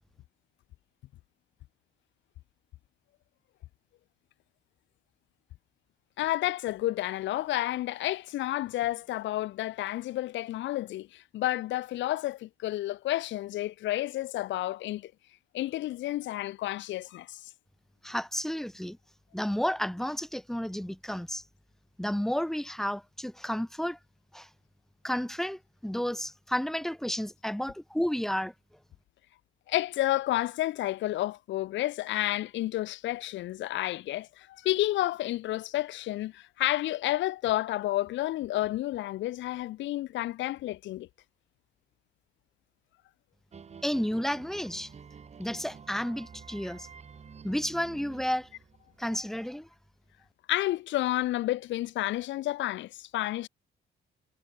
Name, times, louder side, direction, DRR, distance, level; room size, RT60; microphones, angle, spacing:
voice 1, 6.2-15.1 15.5-17.4 29.7-41.1 50.5-53.5, left 15 dB, 70° left, 0.4 m, -30 dB
voice 2, 18.0-19.0 19.3-21.4 22.0-24.0 24.3-24.5 25.0-28.5 43.8-44.9 45.4-46.9 47.4-48.5 49.0-49.7, equal, ahead, 0.5 m, -31 dB
sound 1, 43.5-49.1, right 6 dB, 35° right, 0.8 m, -50 dB
cardioid pair, 90°, 20 cm